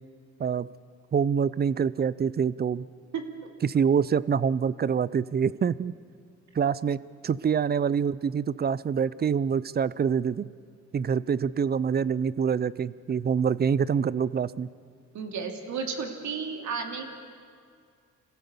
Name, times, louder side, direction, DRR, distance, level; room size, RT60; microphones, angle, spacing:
voice 1, 1.1-2.8 3.6-5.9 6.5-10.5 10.9-14.7, right 7 dB, 35° right, 19 dB, 0.5 m, -26 dB
voice 2, 15.1-17.1, right 5 dB, 70° right, 4 dB, 2.7 m, -33 dB
26.0 x 16.0 x 7.0 m, 2.2 s
cardioid pair, 90°, 30 cm